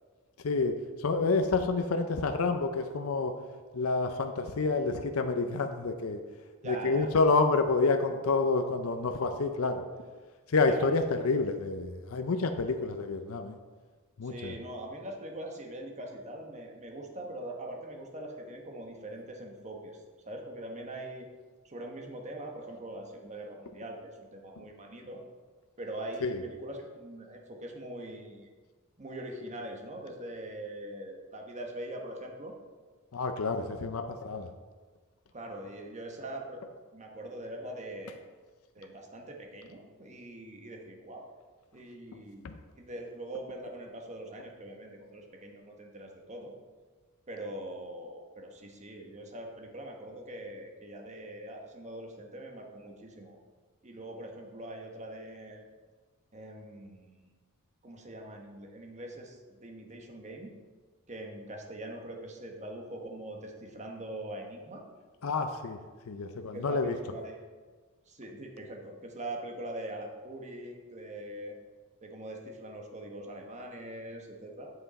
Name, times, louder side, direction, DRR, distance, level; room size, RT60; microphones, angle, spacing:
voice 1, 0.4-3.3 3.7-6.2 6.6-9.8 10.5-13.6 14.2-14.6 26.2-26.4 33.1-34.5 42.4-42.6 65.2-65.8 66.1-67.0, left 3 dB, 70° left, 6 dB, 0.6 m, -28 dB
voice 2, 6.6-7.1 10.7-11.0 14.2-20.0 20.2-21.3 21.6-25.2 25.8-28.5 29.0-32.5 35.3-36.6 36.9-38.2 38.7-41.3 41.7-42.5 42.8-46.5 47.3-53.4 53.8-55.6 56.3-57.2 57.8-60.5 61.1-64.8 66.5-67.4 68.1-71.5 72.0-74.7, right 1 dB, 30° right, 2 dB, 1.1 m, -42 dB
7.9 x 7.9 x 4.1 m, 1.4 s
head